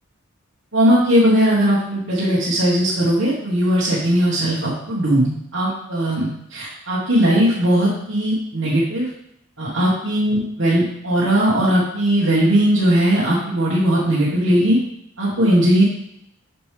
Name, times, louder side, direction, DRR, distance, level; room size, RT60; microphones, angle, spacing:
voice 1, 0.7-9.1 9.6-14.8 15.2-15.8, equal, 60° right, -8 dB, 1.4 m, -18 dB
6.6 x 6.0 x 3.3 m, 0.77 s
head